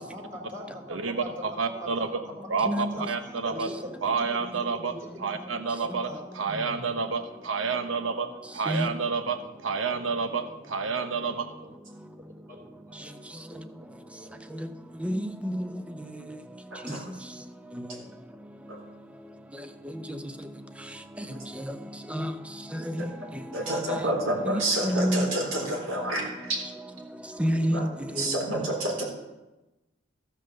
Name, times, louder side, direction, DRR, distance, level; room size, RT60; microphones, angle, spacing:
voice 1, 0.0-1.3 1.8-2.1 2.6-2.7 2.9-3.1 3.4-3.9 4.9-5.2 6.1-7.0 8.2-8.3 9.9-10.1 11.1-11.7 12.5-13.1 13.5-13.6 14.2-14.4, equal, 45° right, -2 dB, 3.6 m, -42 dB
voice 2, 0.9-2.2 2.5-3.7 4.0-4.9 5.2-6.1 6.3-11.5, right 5 dB, 70° right, 8 dB, 0.9 m, -29 dB
voice 3, 2.7-3.1 8.7-8.9 15.0-15.7 16.8-17.0 20.1-20.2 21.6-21.7 22.1-22.3 22.7-23.1 23.3-23.4 23.7-24.1 24.5-25.3 27.4-28.6, equal, 5° right, 8 dB, 0.7 m, -29 dB
voice 4, 16.7-17.0 18.7-18.8 23.0-23.1 23.5-26.6 27.7-27.9 28.2-29.0, right 1 dB, 90° right, -1 dB, 3.7 m, -29 dB
14.5 x 5.9 x 6.6 m, 1.0 s
head